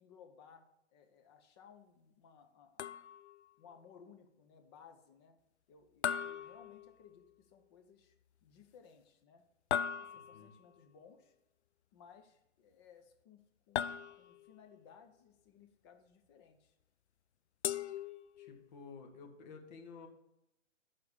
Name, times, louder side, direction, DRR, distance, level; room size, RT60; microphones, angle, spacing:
voice 1, 0.0-2.9 3.6-5.4 5.7-8.1 8.4-9.4 10.0-11.3 11.9-13.4 13.7-16.7, left 7 dB, 20° left, 5 dB, 0.7 m, -60 dB
sound 1, 2.8-3.4 6.0-7.3 9.7-10.6 13.7-14.6 17.6-18.7, left 9 dB, 65° left, 0.5 m, -38 dB
voice 2, 18.4-20.1, left 5 dB, 35° left, 3 dB, 1.7 m, -52 dB
11.5 x 4.2 x 7.0 m, 0.85 s
hypercardioid pair, 140°, 37 cm